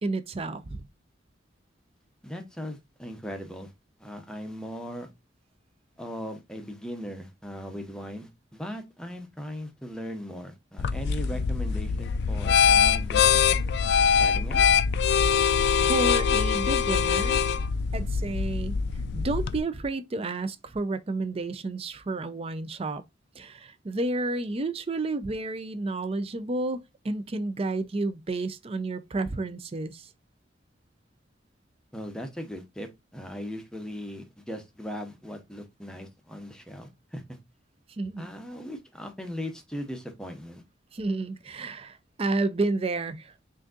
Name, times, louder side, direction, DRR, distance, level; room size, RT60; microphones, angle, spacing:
voice 1, 0.0-0.8 15.7-17.4 17.9-18.8 19.1-23.0 23.4-30.1 38.0-38.3 40.9-43.3, right 2 dB, 30° right, 0.4 m, -31 dB
voice 2, 2.2-3.7 4.0-5.1 6.0-13.3 14.2-14.7 31.9-37.4 38.2-40.6, equal, 5° left, 0.7 m, -38 dB
sound 1, 10.8-19.6, left 7 dB, 60° left, 0.3 m, -23 dB
6.2 x 2.6 x 2.4 m
head